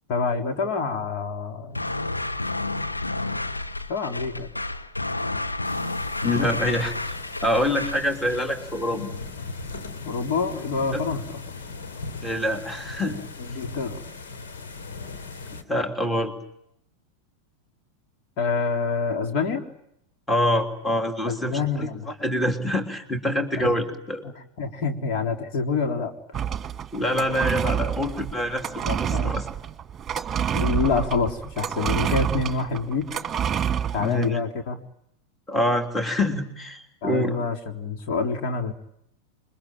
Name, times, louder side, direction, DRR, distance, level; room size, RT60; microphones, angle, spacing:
voice 1, 0.1-1.8 3.9-4.5 10.1-11.2 13.4-14.0 18.4-19.6 21.3-22.1 24.2-24.3 24.6-26.4 28.8-29.3 30.5-33.1 33.9-34.8 37.0-38.7, left 4 dB, 45° left, 4 dB, 3.6 m, -27 dB
sound 1, 1.7-8.1, left 2 dB, 85° left, 1.6 m, -30 dB
sound 2, 5.6-15.6, left 4 dB, 60° left, 3.5 m, -38 dB
voice 2, 6.2-9.1 12.2-13.2 15.7-16.3 20.3-24.2 26.9-29.5 34.0-34.4 35.5-37.4, left 1 dB, 10° left, 6 dB, 3.3 m, -26 dB
sound 3, 26.3-34.3, right 8 dB, 20° right, 2.1 m, -28 dB
29.0 x 22.5 x 9.1 m, 0.76 s
figure-of-eight pair, 90°, 0 cm